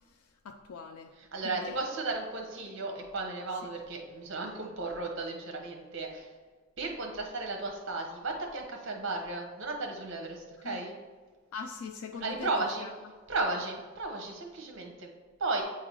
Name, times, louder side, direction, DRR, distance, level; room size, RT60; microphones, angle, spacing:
voice 1, 0.0-1.1 1.4-1.8 3.6-3.7 10.6-10.8 11.5-12.5 12.8-12.9, left 5 dB, 75° left, 6 dB, 0.4 m, -42 dB
voice 2, 1.3-6.3 6.8-10.9 12.1-12.9 13.3-15.1 15.4-15.6, right 3 dB, 55° right, 2 dB, 1.1 m, -34 dB
8.4 x 3.7 x 4.7 m, 1.5 s
head